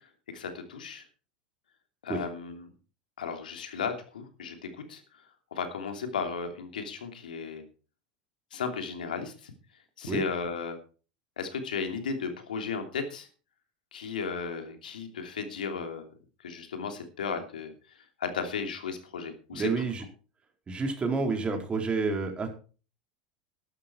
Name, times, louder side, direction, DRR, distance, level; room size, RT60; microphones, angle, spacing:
voice 1, 0.3-1.0 2.0-2.7 3.2-4.6 4.9-5.0 5.5-7.6 8.5-9.5 10.0-10.8 11.4-13.3 13.9-16.1 16.4-17.7 18.2-19.8, left 5 dB, 80° left, 6 dB, 2.9 m, -35 dB
voice 2, 19.5-20.0 20.7-22.5, right 4 dB, 25° right, 4 dB, 4.3 m, -29 dB
12.5 x 12.0 x 4.6 m, 0.37 s
hypercardioid pair, 85°, 5 cm